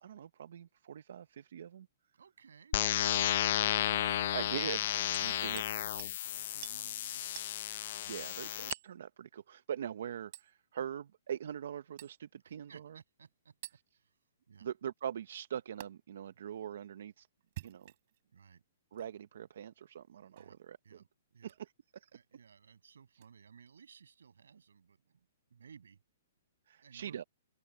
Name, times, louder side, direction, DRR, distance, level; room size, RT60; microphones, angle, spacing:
voice 1, 0.0-1.9 4.3-4.8 5.2-5.6 8.1-13.0 14.6-17.3 17.6-17.9 18.9-21.0 22.0-22.1 26.7-27.2, right 9 dB, 65° right, 0.8 m, -42 dB
voice 2, 2.1-4.5 4.9-7.3 12.4-13.6 13.9-14.2 14.5-14.7 18.3-18.6 20.4-20.6 20.8-21.5 22.1-26.0 26.8-27.3, right 6 dB, 85° right, 6.6 m, -58 dB
sound 1, 2.7-8.7, left 12 dB, 50° left, 0.6 m, -33 dB
Hammer, 5.1-5.7 6.0-6.2 6.6-6.8 7.4-7.5 8.7-9.0 10.3-10.5 12.0-12.2 13.6-13.8 15.8-15.9 17.4-18.2 18.9-19.1 20.4-20.6 21.4-21.6 23.2-23.3, right 16 dB, 45° right, 3.3 m, -48 dB
open air
hypercardioid pair, 155°, 0 cm